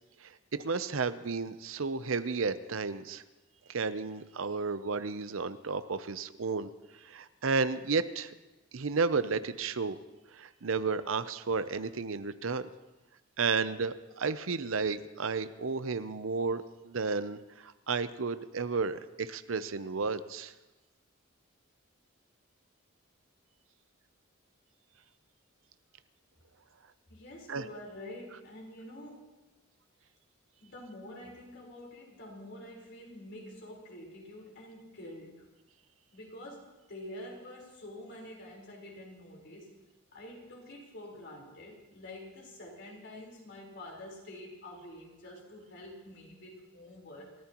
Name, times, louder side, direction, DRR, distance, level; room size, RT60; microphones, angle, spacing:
voice 1, 0.2-3.2 3.7-6.7 7.0-8.3 8.7-10.0 10.3-12.7 13.4-20.5 27.5-27.6, right 4 dB, 70° right, 12 dB, 0.7 m, -32 dB
voice 2, 27.1-29.3 30.6-35.4 36.1-39.8 40.1-47.4, left 1 dB, 60° left, -1 dB, 4.3 m, -47 dB
28.5 x 14.0 x 3.0 m, 1.1 s
head